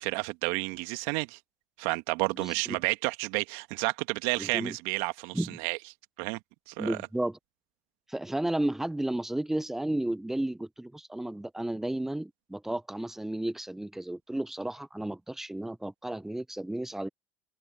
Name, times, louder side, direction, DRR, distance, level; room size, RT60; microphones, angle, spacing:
voice 1, 0.0-1.4 1.8-5.8 6.2-6.4 6.7-7.0, right 28 dB, 65° right, 2.0 m, -31 dB
voice 2, 2.4-2.8 4.4-4.8 5.3-5.6 6.8-7.4 8.1-17.1, right 1 dB, 5° right, 0.8 m, -33 dB
hypercardioid pair, 80°, 7 cm